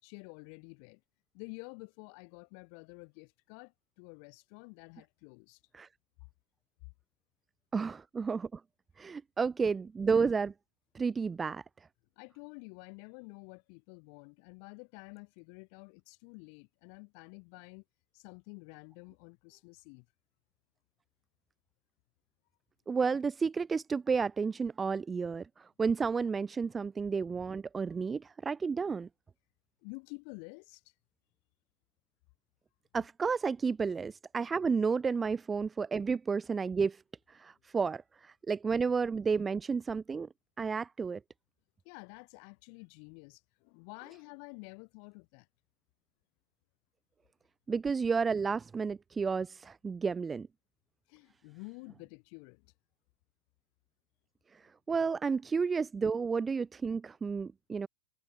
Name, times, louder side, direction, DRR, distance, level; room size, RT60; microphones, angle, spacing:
voice 1, 0.0-1.0 1.3-5.6 12.2-17.8 18.1-20.1 29.8-30.8 41.9-45.5 51.1-52.7, left 40 dB or more, 35° left, 5.3 m, -50 dB
voice 2, 7.7-8.6 9.0-10.5 10.9-11.6 22.9-29.1 32.9-37.0 37.4-40.3 40.6-41.2 47.7-50.5 54.9-57.9, right 5 dB, 10° right, 0.6 m, -31 dB
supercardioid pair, 160°, 0 cm